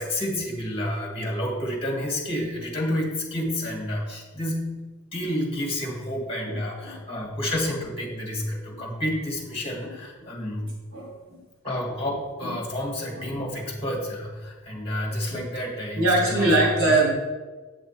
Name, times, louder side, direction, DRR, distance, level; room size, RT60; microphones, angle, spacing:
voice 1, 0.0-4.8 5.1-10.7 11.6-16.9, left 1 dB, 25° left, -1 dB, 2.0 m, -30 dB
voice 2, 6.4-7.0 9.8-9.9 10.9-11.1 12.4-12.5 15.3-15.4 16.0-17.1, right 2 dB, 80° right, -3 dB, 3.0 m, -22 dB
8.1 x 6.8 x 4.3 m, 1.3 s
head